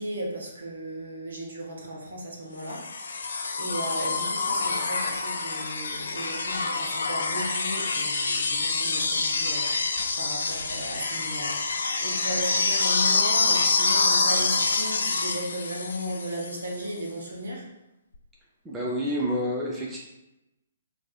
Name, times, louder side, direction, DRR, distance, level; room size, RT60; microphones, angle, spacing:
voice 1, 0.0-11.6 12.0-17.6, right 1 dB, 65° right, -1 dB, 0.9 m, -35 dB
sound 1, 2.7-16.7 18.1-18.2, left 4 dB, 60° left, 0.5 m, -26 dB
voice 2, 18.6-20.0, equal, 15° right, -3 dB, 0.5 m, -28 dB
4.6 x 2.5 x 2.4 m, 0.94 s
figure-of-eight pair, 125°, 0 cm